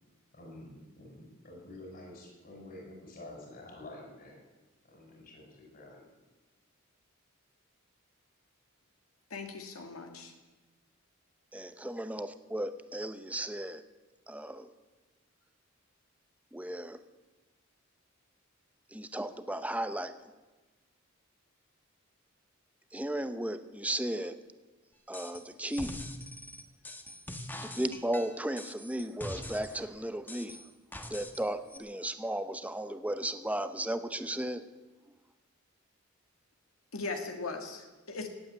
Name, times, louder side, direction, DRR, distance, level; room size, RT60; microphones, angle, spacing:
voice 1, 0.3-4.4 4.8-6.1, left 1 dB, 45° left, 0 dB, 6.0 m, -49 dB
voice 2, 9.3-10.3 36.9-38.3, left 3 dB, 85° left, 4 dB, 2.0 m, -39 dB
voice 3, 11.5-13.8 14.3-14.7 16.5-17.0 18.9-20.3 22.9-24.4 25.1-26.0 27.6-30.6 31.1-34.6, right 1 dB, 5° right, 10 dB, 0.8 m, -35 dB
sound 1, 25.1-25.4 25.7-29.8 30.3-31.4 31.7-31.8, left 1 dB, 10° left, 1.2 m, -43 dB
17.5 x 8.5 x 9.3 m, 1.2 s
head